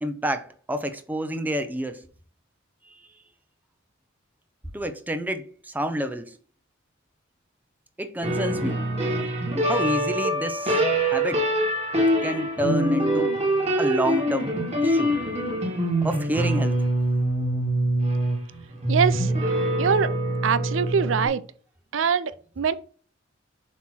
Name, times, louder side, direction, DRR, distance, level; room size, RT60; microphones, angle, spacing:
voice 1, 0.0-2.0 2.9-3.0 4.7-6.4 8.0-8.8 9.6-11.5 12.2-13.3 13.8-15.1 16.0-16.8, equal, 10° right, 0.5 m, -29 dB
sound 1, 8.2-21.3, right 1 dB, 30° right, 2.0 m, -24 dB
voice 2, 18.9-19.3 19.8-20.1 20.4-21.4 21.9-22.7, right 6 dB, 70° right, 0.4 m, -23 dB
7.3 x 3.0 x 6.1 m
head